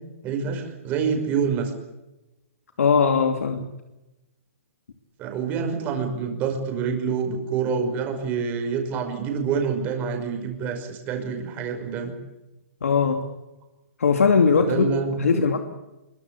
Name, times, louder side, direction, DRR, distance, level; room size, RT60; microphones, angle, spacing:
voice 1, 0.2-1.7 5.2-12.1 14.6-15.4, right 6 dB, 20° right, 4 dB, 5.6 m, -27 dB
voice 2, 2.8-3.7 12.8-13.3 14.0-14.9 15.2-15.6, left 5 dB, 85° left, 5 dB, 2.6 m, -19 dB
25.0 x 23.5 x 8.3 m, 1.0 s
hypercardioid pair, 160°, 8 cm